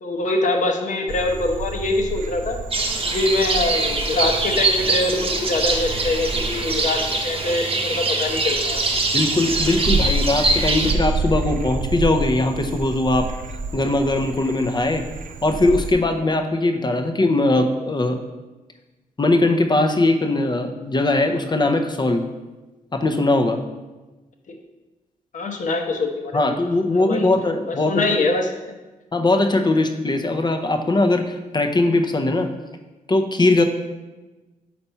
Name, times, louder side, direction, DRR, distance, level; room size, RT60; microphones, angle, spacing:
voice 1, 0.0-2.6 3.0-8.8 24.5-24.6 25.3-26.6 26.9-27.3 27.8-28.5, left 2 dB, 60° left, 3 dB, 0.9 m, -24 dB
Frog, 1.1-15.9, right 3 dB, 70° right, 0.5 m, -30 dB
sound 1, 2.7-10.9, right 2 dB, 40° right, 0.8 m, -23 dB
voice 2, 9.1-13.3 13.7-15.0 15.4-18.2 19.2-22.2 22.9-23.6 26.3-27.9 29.1-32.5 33.1-33.6, left 2 dB, 30° left, 5 dB, 0.7 m, -20 dB
4.3 x 4.2 x 5.6 m, 1.1 s
cardioid pair, 65°, 15 cm